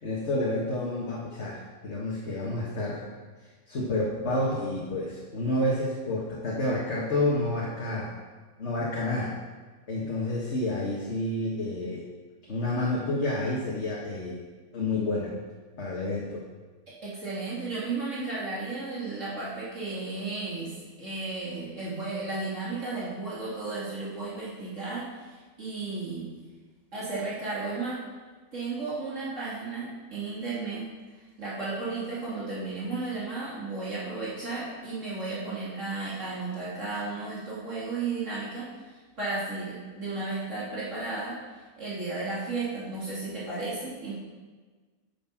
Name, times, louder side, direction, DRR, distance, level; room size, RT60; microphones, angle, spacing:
voice 1, 0.0-3.0 3.7-8.1 8.6-9.3 9.9-12.1 12.4-14.4 14.7-15.3 15.8-16.4, left 1 dB, 50° left, -4 dB, 1.7 m, -29 dB
voice 2, 16.9-26.3 26.9-28.0 28.5-30.9 31.4-38.7 39.2-41.4 41.8-44.1, right 3 dB, 55° right, -8 dB, 3.1 m, -34 dB
9.4 x 8.8 x 5.9 m, 1.4 s
omnidirectional pair, 1.5 m